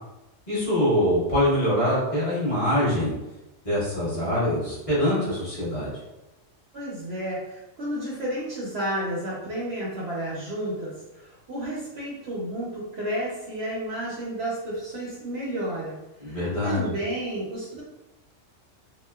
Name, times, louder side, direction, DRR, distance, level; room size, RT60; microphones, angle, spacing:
voice 1, 0.5-3.1 3.6-5.9 16.2-16.9, left 1 dB, 25° left, -12 dB, 1.3 m, -24 dB
voice 2, 6.7-16.0 16.2-17.8, right 1 dB, 60° right, -6 dB, 0.8 m, -31 dB
2.9 x 2.1 x 2.2 m, 0.99 s
omnidirectional pair, 1.3 m